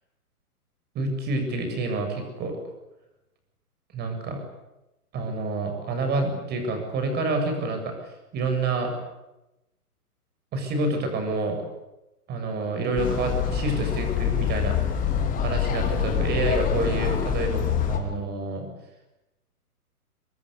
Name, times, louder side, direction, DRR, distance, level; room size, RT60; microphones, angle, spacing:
voice 1, 0.9-2.6 3.9-4.4 5.1-7.9 8.3-8.9 10.5-11.6 12.3-14.9 15.4-18.7, right 2 dB, 20° right, 5 dB, 7.5 m, -28 dB
sound 1, 13.0-18.0, left 8 dB, 15° left, 4.0 m, -25 dB
25.5 x 21.5 x 9.9 m, 0.96 s
figure-of-eight pair, 130°, 46 cm